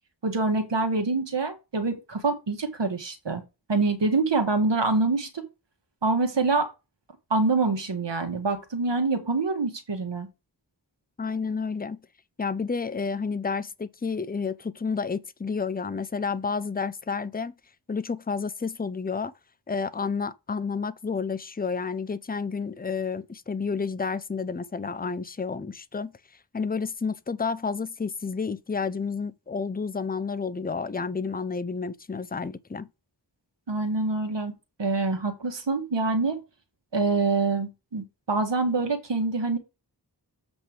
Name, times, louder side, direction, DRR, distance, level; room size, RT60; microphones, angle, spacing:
voice 1, 0.2-3.4 3.7-5.5 6.0-6.7 7.3-10.3 33.7-34.5 34.8-36.4 36.9-39.6, right 3 dB, 90° right, 1.8 m, -25 dB
voice 2, 11.2-12.0 12.4-17.5 17.9-19.3 19.7-26.1 26.5-32.9, left 5 dB, 20° left, 0.6 m, -30 dB
8.0 x 3.4 x 6.0 m
wide cardioid pair, 65°, 42 cm